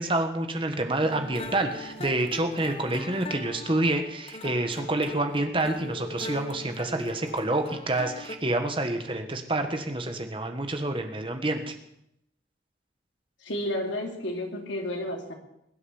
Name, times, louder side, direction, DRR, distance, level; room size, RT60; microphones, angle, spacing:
voice 1, 0.0-11.7, right 2 dB, 25° right, 6 dB, 1.5 m, -28 dB
sound 1, 1.0-8.4, left 2 dB, 30° left, 1.1 m, -40 dB
voice 2, 13.4-15.3, left 1 dB, 80° left, 1 dB, 3.1 m, -31 dB
21.5 x 8.4 x 7.2 m, 0.81 s
head